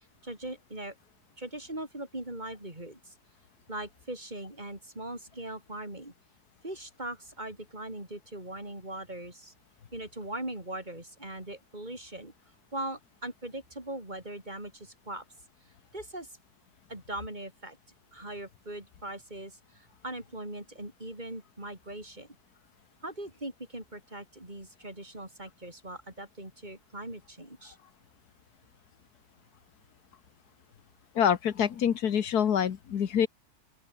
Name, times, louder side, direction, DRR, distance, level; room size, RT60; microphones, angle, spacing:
voice 1, 0.2-1.0 1.4-3.1 3.7-6.1 6.6-9.5 9.9-12.3 12.7-15.2 15.9-16.4 16.9-17.8 18.1-22.3 23.0-27.8, right 1 dB, 25° right, 6.0 m, -40 dB
voice 2, 31.2-33.3, left 8 dB, 75° left, 1.7 m, -26 dB
open air
omnidirectional pair, 1.7 m